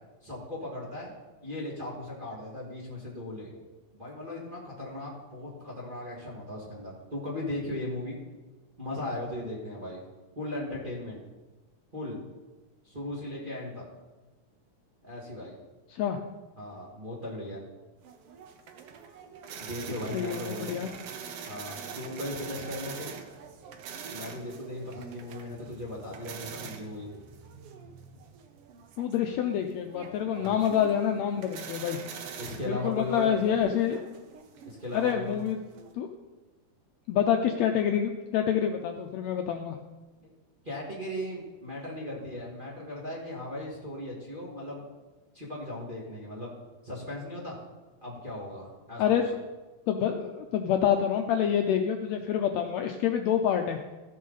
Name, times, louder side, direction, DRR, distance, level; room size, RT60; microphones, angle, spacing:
voice 1, 0.2-1.1 1.4-3.5 3.9-8.2 8.8-10.0 10.4-11.2 11.9-12.2 12.8-13.9 15.0-15.6 16.6-17.6 19.6-20.8 21.5-23.1 24.1-27.1 30.4-30.6 32.4-33.3 34.7-35.4 40.2-40.3 40.6-44.8 45.3-46.5 46.8-47.6 48.0-49.0, left 1 dB, 20° right, -5 dB, 1.6 m, -37 dB
sound 1, 18.0-35.9, right 6 dB, 70° right, 1.4 m, -44 dB
voice 2, 20.1-20.9 29.0-32.0 32.7-34.0 34.9-35.6 36.0-36.1 37.1-39.8 49.0-49.3 49.9-53.8, left 9 dB, 80° left, 4 dB, 1.6 m, -27 dB
14.5 x 7.6 x 4.0 m, 1.2 s
omnidirectional pair, 3.6 m